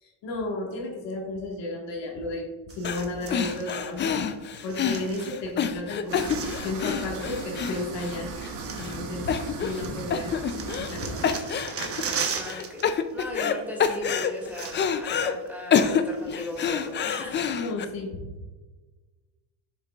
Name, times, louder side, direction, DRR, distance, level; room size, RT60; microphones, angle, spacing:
voice 1, 0.0-4.2 4.6-8.3 8.7-10.3 10.7-11.5 17.6-18.2, left 2 dB, 55° left, 0 dB, 1.7 m, -33 dB
sound 1, 2.7-3.8 4.5-5.6 5.9-7.1 7.9-8.0 8.4-9.6 9.8-12.9 13.1-13.3 14.1-14.2 14.4-15.1 15.5-15.6 16.1-17.0 17.6-17.7, right 6 dB, 30° right, 0.9 m, -37 dB
sound 2, 2.8-3.0 3.3-8.5 8.8-8.9 9.3-9.8 10.1-11.0 11.2-12.0 12.5-13.5 13.8-15.3 15.7-17.8, left 7 dB, 25° left, 0.3 m, -27 dB
sound 3, 6.1-11.3, right 3 dB, 75° right, 1.7 m, -37 dB
voice 2, 12.3-17.5, left 1 dB, 5° right, -2 dB, 2.1 m, -38 dB
7.5 x 6.6 x 2.4 m, 1.3 s
supercardioid pair, 110°, 50 cm